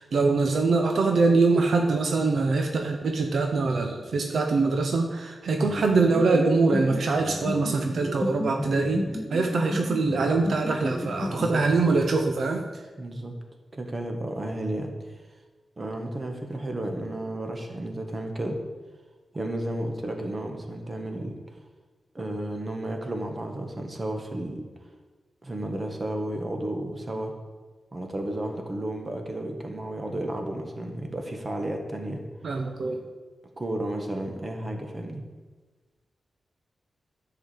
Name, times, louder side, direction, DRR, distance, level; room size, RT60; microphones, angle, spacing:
voice 1, 0.0-9.0 9.3-12.6 32.4-33.0, right 3 dB, 75° right, 3 dB, 0.9 m, -23 dB
sound 1, 5.6-12.3, left 1 dB, 15° left, 1.1 m, -33 dB
voice 2, 11.2-11.6 13.0-13.3 13.7-15.1 15.8-18.6 19.3-21.4 22.1-24.6 25.4-27.3 27.9-32.2 33.6-35.2, right 1 dB, 30° right, 3 dB, 1.6 m, -32 dB
11.0 x 5.0 x 8.3 m, 1.3 s
wide cardioid pair, 90°, 0 cm